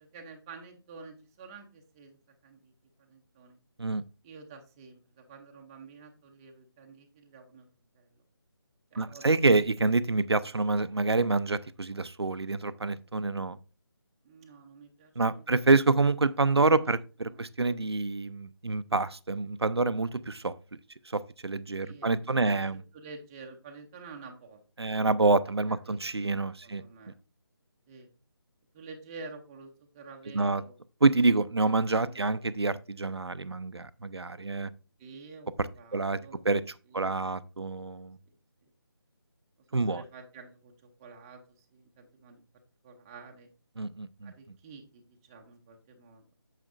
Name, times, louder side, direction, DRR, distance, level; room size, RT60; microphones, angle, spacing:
voice 1, 0.1-2.2 2.4-2.7 3.0-3.6 4.2-7.7 7.9-8.1 8.9-9.4 14.2-15.5 17.2-17.4 21.8-22.1 22.4-25.2 25.7-26.0 26.6-27.1 27.9-28.1 28.7-30.8 31.9-32.4 35.0-36.4 36.9-37.2 37.8-37.9 38.3-38.4 39.7-40.7 41.0-42.4 42.8-43.5 44.2-46.3, right 4 dB, 10° right, 0.5 m, -49 dB
voice 2, 9.0-13.6 15.2-20.5 21.1-22.8 24.8-26.8 30.3-30.6 31.0-34.7 35.6-36.2 36.4-36.6 36.9-38.2 39.7-40.0 43.8-44.3, right 3 dB, 85° right, 0.5 m, -27 dB
9.0 x 7.3 x 2.5 m
figure-of-eight pair, 155°, 13 cm